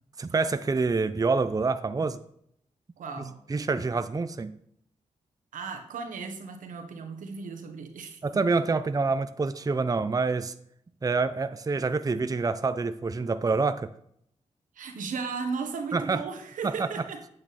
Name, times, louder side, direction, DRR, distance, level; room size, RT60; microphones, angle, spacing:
voice 1, 0.2-2.2 3.5-4.6 8.2-10.5 11.0-13.9 15.9-16.2 16.6-16.9, right 4 dB, 30° right, 0.6 m, -27 dB
voice 2, 3.0-3.8 5.5-8.2 14.7-17.2, right 5 dB, 85° right, 1.4 m, -36 dB
8.8 x 8.5 x 4.2 m
cardioid pair, 60°, 13 cm